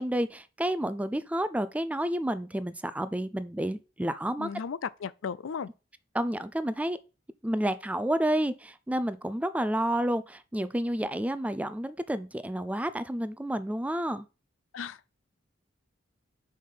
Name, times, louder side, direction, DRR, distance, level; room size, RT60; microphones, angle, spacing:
voice 1, 0.0-4.5 6.1-7.0 7.4-14.2, right 1 dB, 5° right, 0.4 m, -30 dB
voice 2, 4.4-5.7 14.7-15.1, left 6 dB, 90° left, 0.4 m, -35 dB
5.6 x 5.0 x 5.5 m
head